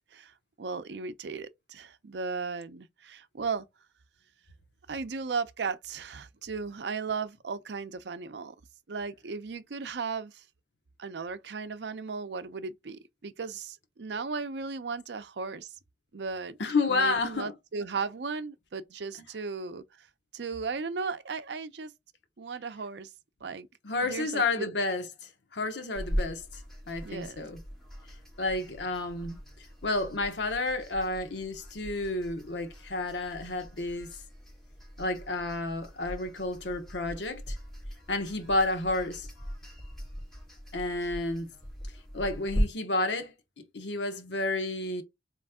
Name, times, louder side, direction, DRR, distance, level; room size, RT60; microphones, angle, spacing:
voice 1, 0.1-3.7 4.9-8.5 8.9-10.4 11.0-15.7 16.1-16.6 16.9-20.1 20.3-21.9 22.4-23.1 23.4-23.7 24.0-24.7 27.0-27.5, right 4 dB, 75° right, 0.5 m, -36 dB
voice 2, 16.6-17.5 23.8-25.1 25.5-27.6 28.4-29.4 29.8-34.1 35.0-37.6 38.1-39.3 40.7-41.5 42.1-45.0, left 2 dB, 80° left, 1.0 m, -31 dB
sound 1, 25.9-42.6, equal, ahead, 2.3 m, -41 dB
4.3 x 3.1 x 3.6 m
head